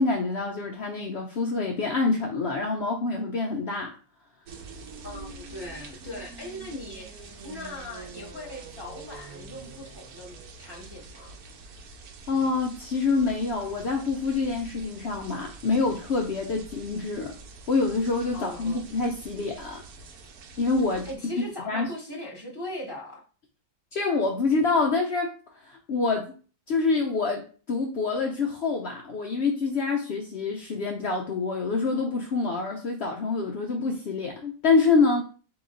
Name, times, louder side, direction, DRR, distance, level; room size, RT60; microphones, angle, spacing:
voice 1, 0.0-3.9 12.3-17.3 17.7-19.8 20.6-21.1 21.7-21.9 23.9-25.3 25.6-26.3 26.7-35.2, left 4 dB, 85° left, 1 dB, 0.5 m, -26 dB
sound 1, 4.5-21.2, right 4 dB, 70° right, 1.1 m, -45 dB
voice 2, 5.0-11.4 18.3-18.9 21.0-23.2, left 1 dB, 20° right, -4 dB, 0.9 m, -39 dB
3.7 x 3.0 x 3.8 m, 0.38 s
omnidirectional pair, 1.8 m